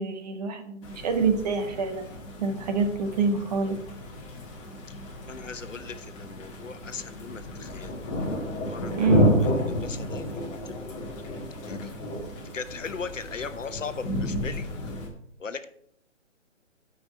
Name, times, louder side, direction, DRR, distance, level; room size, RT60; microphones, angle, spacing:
voice 1, 0.0-2.1 2.4-3.8 9.0-9.3, right 5 dB, 30° right, 5 dB, 1.2 m, -26 dB
sound 1, 0.8-15.1, left 1 dB, 20° left, 1.8 m, -31 dB
voice 2, 5.2-7.9 8.6-11.0 11.6-11.9 12.5-14.7 15.4-15.6, left 5 dB, 75° left, 11 dB, 1.0 m, -38 dB
13.0 x 5.3 x 4.5 m, 0.67 s
figure-of-eight pair, 145°, 38 cm